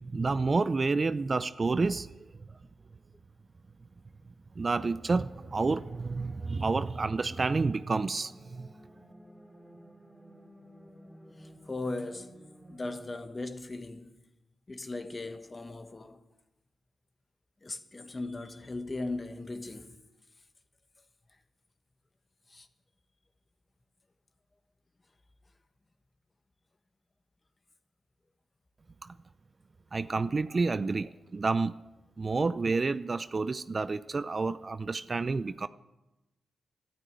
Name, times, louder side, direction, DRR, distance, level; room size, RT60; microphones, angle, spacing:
voice 1, 0.0-2.3 4.6-8.7 29.0-29.1 29.9-31.8 32.2-35.7, right 3 dB, 35° right, 0.5 m, -29 dB
sound 1, 4.6-13.0, equal, ahead, 3.1 m, -54 dB
voice 2, 11.4-12.4 12.7-14.1 14.7-16.2 17.6-20.0 22.5-22.7, left 2 dB, 25° left, 1.4 m, -38 dB
13.0 x 12.5 x 9.0 m
cardioid pair, 85°, 0 cm